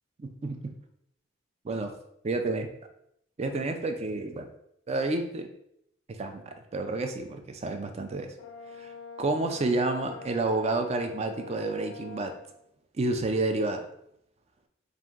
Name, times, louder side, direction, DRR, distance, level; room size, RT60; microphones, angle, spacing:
voice 1, 0.2-0.7 1.6-1.9 2.2-2.7 3.4-4.5 4.9-5.5 6.2-6.4 6.7-8.3 8.8-8.9 9.2-12.4 12.9-13.9, right 2 dB, 35° right, 6 dB, 0.4 m, -29 dB
Brass instrument, 8.4-12.5, left 5 dB, 90° left, 0.4 m, -44 dB
4.2 x 2.5 x 3.6 m, 0.75 s
head